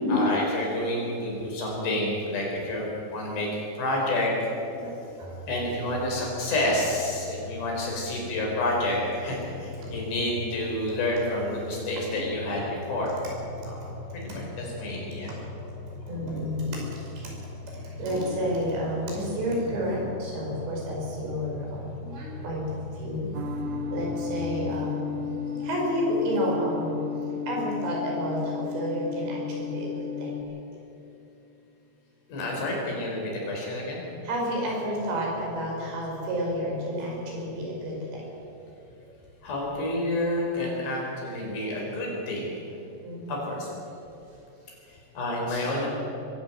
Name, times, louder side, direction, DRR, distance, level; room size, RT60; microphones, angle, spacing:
voice 1, 0.1-4.5 5.5-13.1 13.6-15.3 32.3-34.0 39.4-42.5 43.3-43.7 44.9-45.9, left 1 dB, 75° left, -2 dB, 7.0 m, -29 dB
voice 2, 4.7-5.4 9.8-9.9 12.1-12.2 15.3-15.4 16.0-17.4 17.7-23.3 23.9-25.1 25.5-27.0 27.5-30.5 34.2-38.3 39.0-39.1 43.0-43.5, equal, 85° right, -2 dB, 7.6 m, -30 dB
sound 1, 5.2-24.4, left 3 dB, 55° left, 2.8 m, -41 dB
sound 2, 23.3-30.4, left 7 dB, 65° right, 2.0 m, -33 dB
23.0 x 15.5 x 7.7 m, 2.9 s
omnidirectional pair, 5.0 m